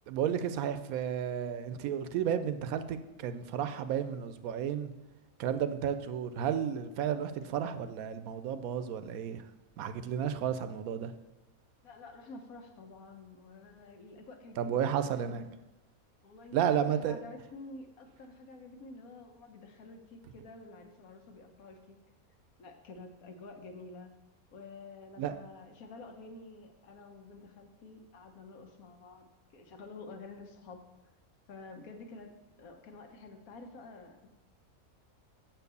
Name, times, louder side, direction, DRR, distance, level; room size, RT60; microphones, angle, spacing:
voice 1, 0.1-4.9 5.4-9.4 9.8-11.1 14.6-15.4 16.5-17.2 25.2-25.4, right 9 dB, 85° right, 11 dB, 1.1 m, -32 dB
voice 2, 11.8-15.4 16.2-16.7 17.0-22.0 22.6-24.2 24.5-29.3 29.5-30.8 31.5-34.3, left 3 dB, 85° left, 5 dB, 1.4 m, -49 dB
7.5 x 4.5 x 6.7 m, 1.0 s
omnidirectional pair, 1.5 m